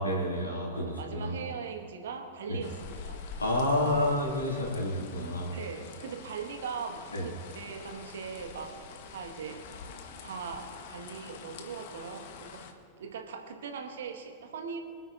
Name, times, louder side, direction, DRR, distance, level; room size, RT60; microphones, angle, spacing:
voice 1, 0.0-1.3 2.5-2.6 3.4-5.6 7.1-7.2, left 1 dB, 80° left, -2 dB, 2.2 m, -29 dB
voice 2, 0.7-3.2 5.5-9.6 10.2-12.6 13.0-14.8, right 6 dB, 60° right, 3 dB, 1.4 m, -40 dB
sound 1, 2.6-12.7, left 5 dB, 50° left, 1.0 m, -46 dB
25.5 x 8.9 x 2.5 m, 2.2 s
figure-of-eight pair, 90°, 0 cm